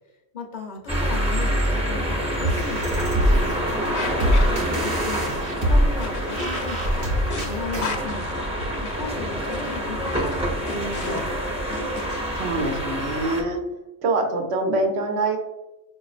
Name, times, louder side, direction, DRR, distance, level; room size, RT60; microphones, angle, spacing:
voice 1, 0.3-3.8 4.8-11.4, left 3 dB, 45° left, 1 dB, 0.8 m, -36 dB
sound 1, 0.9-13.4, equal, 5° right, 0.6 m, -27 dB
sound 2, 2.4-8.0, equal, 55° right, 0.9 m, -24 dB
sound 3, 3.9-12.2, left 4 dB, 70° left, 0.8 m, -35 dB
voice 2, 4.5-4.9 12.3-13.6 14.0-15.4, right 2 dB, 85° right, 3 dB, 1.0 m, -25 dB
4.9 x 2.5 x 2.4 m, 0.99 s
omnidirectional pair, 1.1 m